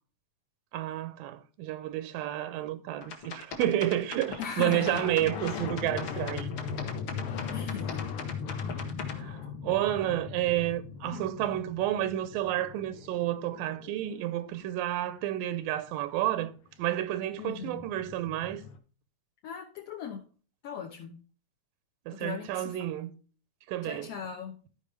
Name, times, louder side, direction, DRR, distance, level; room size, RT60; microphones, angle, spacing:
voice 1, 0.7-6.5 9.2-16.5 16.8-18.6 22.1-23.1 23.7-24.1, right 13 dB, 85° right, 2.4 m, -30 dB
sound 1, 3.0-9.1, left 4 dB, 50° left, 1.7 m, -40 dB
sound 2, 4.2-14.6 16.7-16.8 17.0-18.8, left 6 dB, 85° left, 1.2 m, -39 dB
voice 2, 4.4-5.0 7.5-8.1 11.0-11.3 17.4-17.8 19.4-20.2 20.6-21.2 22.1-22.8 23.8-24.6, left 7 dB, 65° left, 1.7 m, -38 dB
14.0 x 5.2 x 3.2 m
omnidirectional pair, 3.8 m